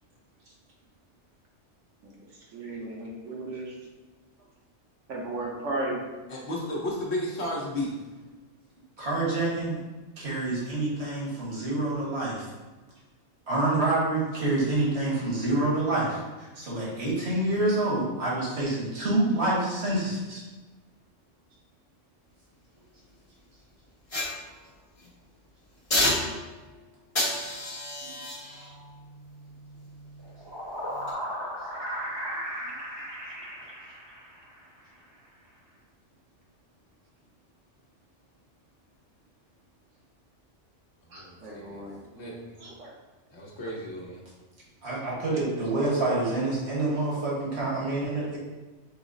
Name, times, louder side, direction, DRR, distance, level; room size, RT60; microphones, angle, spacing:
voice 1, 2.5-3.7 5.1-6.0 41.1-42.9, right 2 dB, 90° right, -2 dB, 1.4 m, -35 dB
voice 2, 6.3-7.9 41.1-41.8 42.1-42.3 43.3-44.2, left 1 dB, 65° left, -3 dB, 1.3 m, -33 dB
voice 3, 9.0-9.8 10.2-12.5 13.5-20.4 44.8-48.4, right 2 dB, 60° right, -6 dB, 1.6 m, -27 dB
sound 1, 24.1-25.1 25.9-26.7 27.2-30.4 30.9-31.1, left 1 dB, 30° left, 0.9 m, -31 dB
sound 2, 30.2-34.6, equal, 30° right, 0.5 m, -36 dB
6.0 x 2.0 x 3.8 m, 1.2 s
omnidirectional pair, 1.2 m